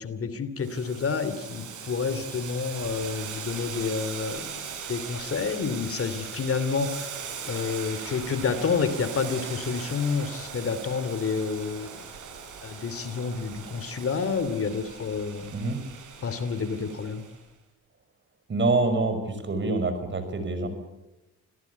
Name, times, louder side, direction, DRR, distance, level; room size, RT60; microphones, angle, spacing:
voice 1, 0.0-12.0 12.6-15.5 16.2-17.2, left 5 dB, 50° left, 12 dB, 2.9 m, -29 dB
Boiling, 0.6-17.4, right 6 dB, 80° right, 7.9 m, -39 dB
voice 2, 18.5-20.7, right 3 dB, 40° right, 9 dB, 6.0 m, -26 dB
26.5 x 18.0 x 8.3 m, 0.98 s
cardioid pair, 90°, 30 cm